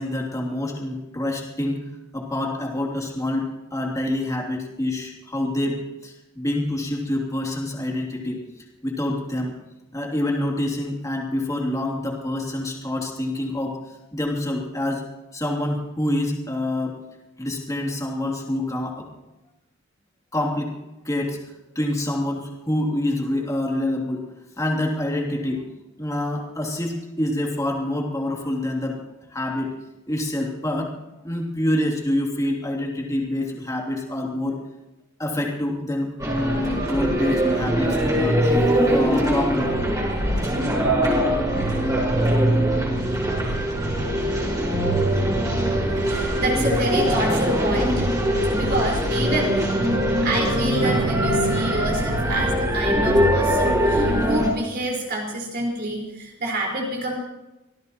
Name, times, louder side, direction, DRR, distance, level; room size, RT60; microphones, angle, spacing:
voice 1, 0.0-1.8 2.1-8.4 8.8-9.5 9.9-13.8 14.1-15.0 15.3-16.9 17.4-19.1 20.3-20.7 21.0-21.4 21.7-24.2 24.6-25.6 26.0-29.0 29.3-29.7 30.1-30.9 31.2-34.6 35.2-38.4 38.9-39.7, left 1 dB, 15° left, -1 dB, 2.9 m, -26 dB
sound 1, 36.2-54.5, equal, 15° right, 5.5 m, -22 dB
voice 2, 46.0-48.1 48.5-49.5 50.2-57.2, right 1 dB, 45° right, -2 dB, 4.9 m, -27 dB
25.5 x 18.5 x 3.1 m, 1.0 s
head